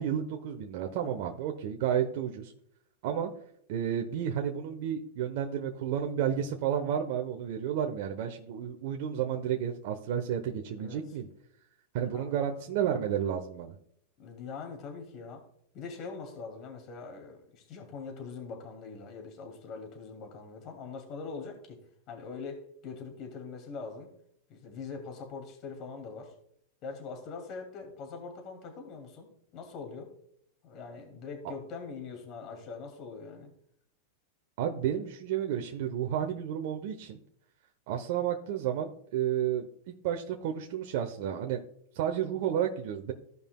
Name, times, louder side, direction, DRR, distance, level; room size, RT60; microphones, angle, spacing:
voice 1, 0.0-2.5 3.0-3.3 3.7-11.3 11.9-13.8 31.4-31.5 34.6-37.2 37.9-41.6 41.9-43.1, right 9 dB, 60° right, 3 dB, 0.9 m, -31 dB
voice 2, 14.2-15.4 15.7-21.8 22.1-24.1 24.5-26.3 26.8-30.1 30.6-33.5, left 4 dB, 45° left, 3 dB, 2.6 m, -42 dB
15.5 x 5.4 x 2.3 m, 0.71 s
hypercardioid pair, 115°, 0 cm